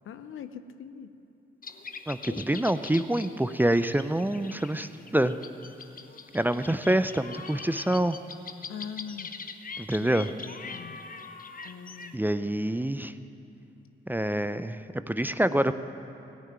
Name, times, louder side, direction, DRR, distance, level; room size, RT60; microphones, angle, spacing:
voice 1, 0.0-1.1 2.2-2.6 4.4-4.6 8.7-9.3 10.0-11.0 11.6-12.2 15.5-15.7, left 7 dB, 75° left, 10 dB, 0.7 m, -42 dB
sound 1, 1.6-12.1, left 5 dB, 40° left, 0.8 m, -43 dB
voice 2, 2.1-5.4 6.3-8.2 9.8-10.3 12.1-13.1 14.1-15.7, right 1 dB, 10° right, 12 dB, 0.5 m, -26 dB
17.0 x 5.8 x 8.9 m, 2.8 s
supercardioid pair, 45°, 21 cm